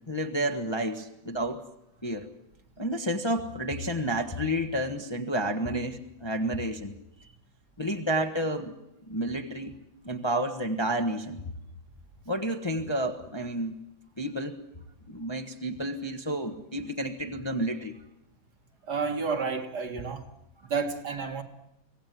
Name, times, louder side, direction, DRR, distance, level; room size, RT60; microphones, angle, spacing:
voice 1, 0.1-1.6 2.0-2.3 2.8-6.9 7.8-8.7 9.1-9.8 10.0-11.4 12.3-13.7 14.2-14.6 15.1-18.0, right 1 dB, 15° left, 1.1 m, -30 dB
voice 2, 18.8-20.3 20.6-21.4, right 5 dB, 60° right, 2.4 m, -30 dB
24.5 x 17.5 x 9.3 m
omnidirectional pair, 2.1 m